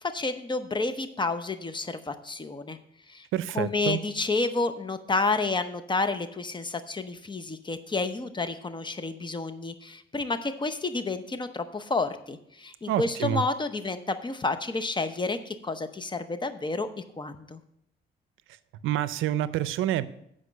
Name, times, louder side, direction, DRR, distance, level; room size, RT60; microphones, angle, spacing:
voice 1, 0.0-2.8 3.1-3.3 3.5-16.9 17.2-17.6, left 3 dB, 25° left, 10 dB, 0.8 m, -30 dB
voice 2, 3.3-4.0 12.9-13.4 18.8-20.1, right 12 dB, 85° right, 16 dB, 0.5 m, -27 dB
8.2 x 5.1 x 6.5 m, 0.73 s
cardioid pair, 90°, 20 cm